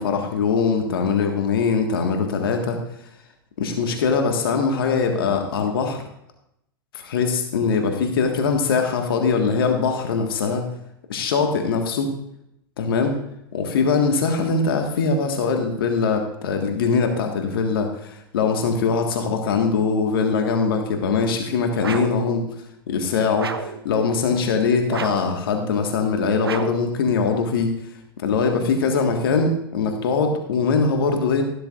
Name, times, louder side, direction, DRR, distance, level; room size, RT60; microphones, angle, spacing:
voice 1, 0.0-2.8 3.6-6.0 6.9-10.7 11.1-12.1 12.8-13.2 13.5-22.4 22.9-27.7 28.2-31.4, left 5 dB, 70° left, 4 dB, 1.6 m, -22 dB
sound 1, 21.8-22.3 23.4-23.8 24.9-25.4 26.4-26.9, right 5 dB, 90° right, 0.7 m, -31 dB
13.5 x 12.0 x 2.5 m, 0.79 s
hypercardioid pair, 95°, 12 cm